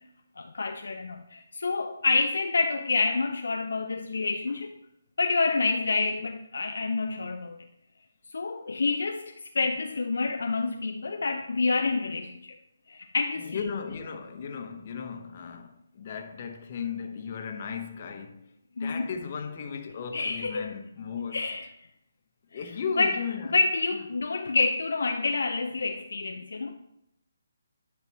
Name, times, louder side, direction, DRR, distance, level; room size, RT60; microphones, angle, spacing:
voice 1, 0.4-4.7 5.2-7.6 8.3-12.5 12.9-13.6 18.8-19.1 20.1-20.7 21.3-21.7 22.5-22.6 23.0-23.2 23.4-26.7, left 3 dB, 65° left, 0.5 m, -28 dB
voice 2, 13.4-18.5 18.8-21.4 22.5-23.5, left 6 dB, 40° left, 1.0 m, -36 dB
10.5 x 5.9 x 2.9 m
figure-of-eight pair, 145°, 0 cm